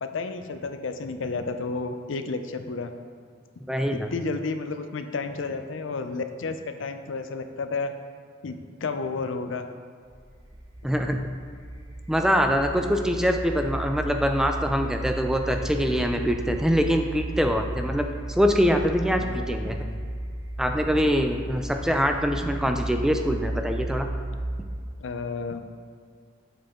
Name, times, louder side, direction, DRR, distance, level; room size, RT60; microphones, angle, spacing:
voice 1, 0.0-2.9 3.9-7.9 8.4-9.6 19.1-19.4 25.0-25.6, left 4 dB, 85° left, 8 dB, 0.5 m, -31 dB
voice 2, 3.7-4.1 10.8-11.3 12.1-19.8 20.6-24.1, equal, 5° right, 5 dB, 0.3 m, -24 dB
sound 1, 10.1-24.9, right 1 dB, 65° right, 1.0 m, -34 dB
7.3 x 5.0 x 3.6 m, 2.1 s
head